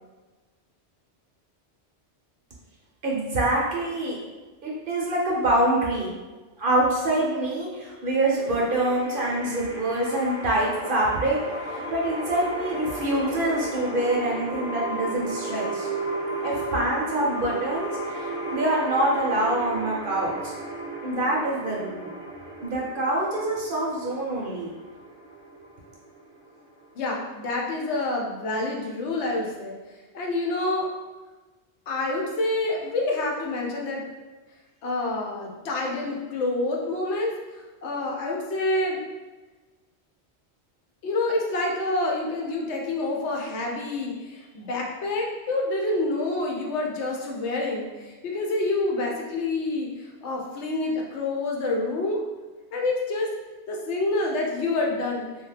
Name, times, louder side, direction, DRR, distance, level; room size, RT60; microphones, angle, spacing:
voice 1, 3.0-4.2 4.6-6.1 6.6-11.4 11.7-15.9 16.4-20.5 21.0-22.1 22.6-24.7, right 1 dB, 55° right, -3 dB, 0.7 m, -25 dB
sound 1, 8.3-27.3, right 2 dB, 5° right, 0.3 m, -35 dB
voice 2, 27.0-29.8 30.1-30.9 31.9-34.0 34.8-39.0 41.0-49.9 50.2-52.2 52.7-53.3 53.7-55.3, left 2 dB, 75° left, 0 dB, 0.9 m, -27 dB
2.8 x 2.3 x 3.2 m, 1.3 s
omnidirectional pair, 1.2 m